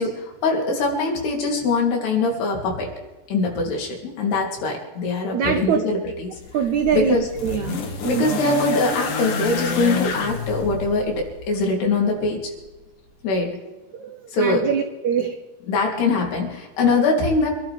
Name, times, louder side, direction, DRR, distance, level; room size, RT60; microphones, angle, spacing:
voice 1, 0.0-2.9 3.3-6.3 6.9-7.2 8.1-12.5 13.2-13.6 14.3-14.7 15.7-17.5, left 3 dB, 85° left, 0 dB, 5.2 m, -22 dB
voice 2, 5.3-5.8 6.5-7.8 8.0-8.3 13.9-15.4, right 7 dB, 90° right, 7 dB, 1.6 m, -23 dB
sound 1, 6.4-11.6 12.6-12.7, left 4 dB, 60° left, 3.2 m, -28 dB
26.5 x 12.0 x 3.5 m, 1.1 s
omnidirectional pair, 4.5 m